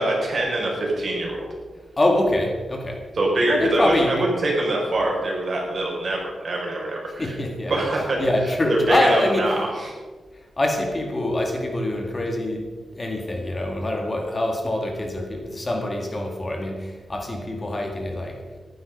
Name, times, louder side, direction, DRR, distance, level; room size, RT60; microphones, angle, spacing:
voice 1, 0.0-1.4 3.1-4.2 4.4-7.3 7.7-8.2 8.9-9.9, right 1 dB, 45° right, -2 dB, 5.3 m, -24 dB
voice 2, 2.0-3.0 3.5-4.3 7.2-7.8 8.2-9.6 10.3-12.7 12.9-18.4, left 1 dB, 25° left, 2 dB, 2.0 m, -24 dB
14.5 x 11.5 x 5.3 m, 1.4 s
wide cardioid pair, 120°, 0 cm